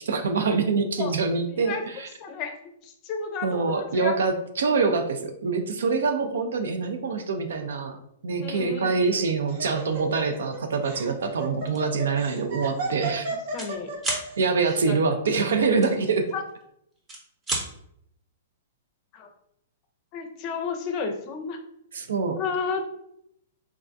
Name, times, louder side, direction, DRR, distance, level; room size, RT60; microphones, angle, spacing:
voice 1, 0.1-2.1 3.4-8.0 8.2-13.3 14.4-16.2 21.9-22.4, right 4 dB, 80° right, 7 dB, 0.5 m, -25 dB
voice 2, 1.5-1.8 2.2-2.6 2.8-4.1 8.4-9.0 13.5-13.9 14.9-15.0 16.3-16.4 19.1-19.3 20.1-21.6 22.4-22.9, left 5 dB, 35° left, 6 dB, 0.5 m, -32 dB
Laughter, 8.9-14.3, right 3 dB, 60° right, 0.8 m, -34 dB
sound 1, 11.7-11.9 12.4-12.5 12.8-13.7 14.0-14.3 15.8-16.6 17.0-17.7, right 2 dB, 20° right, 0.8 m, -31 dB
3.4 x 2.2 x 2.5 m, 0.73 s
hypercardioid pair, 140°, 0 cm